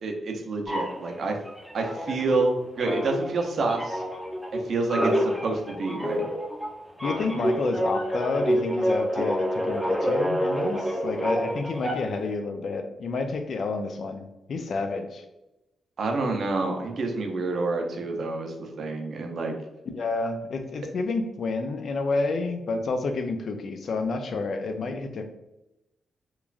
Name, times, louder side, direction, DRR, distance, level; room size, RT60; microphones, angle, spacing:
voice 1, 0.0-1.4 1.7-4.0 4.7-5.1 5.4-6.3 16.0-19.5, right 3 dB, 65° right, 3 dB, 0.5 m, -28 dB
sound 1, 0.7-2.5 2.8-12.3, equal, 5° right, 0.6 m, -28 dB
voice 2, 4.9-5.2 7.0-14.2 14.5-15.2 19.9-25.2, left 3 dB, 65° left, 6 dB, 0.4 m, -29 dB
3.0 x 2.3 x 2.4 m, 0.93 s
cardioid pair, 65°, 0 cm